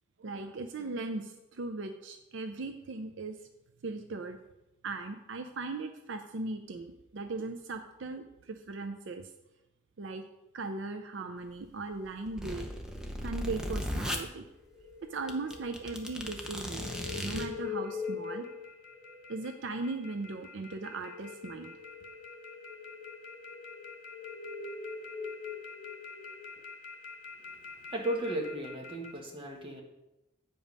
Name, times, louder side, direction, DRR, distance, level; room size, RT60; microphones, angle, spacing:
voice 1, 0.2-3.4 3.8-4.4 4.8-9.3 10.0-10.3 10.5-12.7 13.2-14.4 15.1-16.9 17.2-18.4 19.3-21.7, right 3 dB, 70° right, 7 dB, 0.5 m, -38 dB
sound 1, 12.0-14.2 14.9-15.0 15.3-17.5, equal, 5° right, 0.7 m, -36 dB
sound 2, 14.5-29.1, left 5 dB, 65° left, 1.4 m, -43 dB
voice 2, 27.9-29.8, right 1 dB, 30° right, 1 dB, 1.4 m, -35 dB
8.4 x 5.2 x 5.3 m, 0.96 s
head